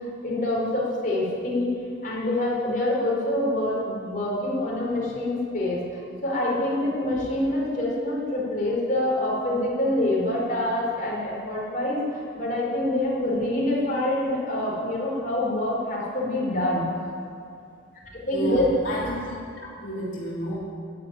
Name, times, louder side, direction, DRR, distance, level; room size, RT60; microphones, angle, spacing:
voice 1, 0.2-1.7 2.0-5.8 6.2-16.9 18.1-18.7, left 1 dB, 45° left, -4 dB, 4.6 m, -26 dB
voice 2, 18.3-19.3 19.6-20.6, right 1 dB, 80° left, -6 dB, 3.1 m, -30 dB
12.0 x 11.0 x 9.1 m, 2.4 s
head